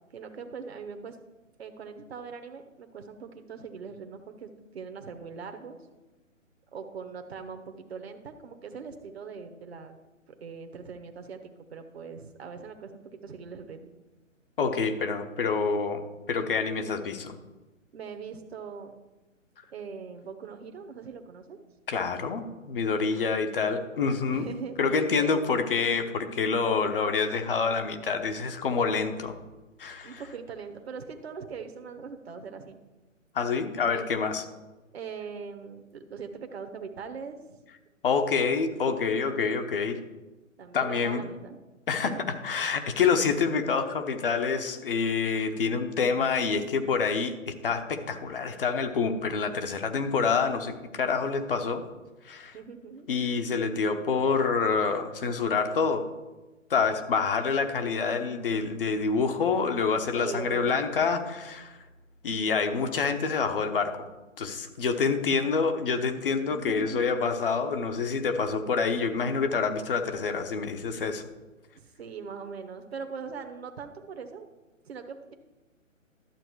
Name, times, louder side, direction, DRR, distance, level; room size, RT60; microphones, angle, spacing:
voice 1, 0.1-1.2 1.6-5.8 6.7-10.0 10.4-13.8 14.8-14.9 16.8-16.9 17.9-18.9 19.7-21.6 23.1-23.4 24.3-25.4 30.0-32.8 33.9-34.0 34.9-37.6 40.6-41.6 41.9-42.2 52.5-53.1 60.2-60.8 64.9-65.1 66.3-67.2 71.7-74.5 74.8-75.3, right 5 dB, 50° right, 6 dB, 1.1 m, -41 dB
voice 2, 14.6-16.0 16.3-17.3 21.9-24.5 24.8-29.4 29.8-30.2 33.3-34.4 38.0-40.0 40.7-41.3 41.9-51.8 52.2-52.6 53.1-56.0 56.7-61.8 62.2-64.1 64.4-71.3, left 5 dB, 45° left, 7 dB, 1.0 m, -27 dB
12.0 x 7.6 x 4.7 m, 1.1 s
figure-of-eight pair, 135°, 39 cm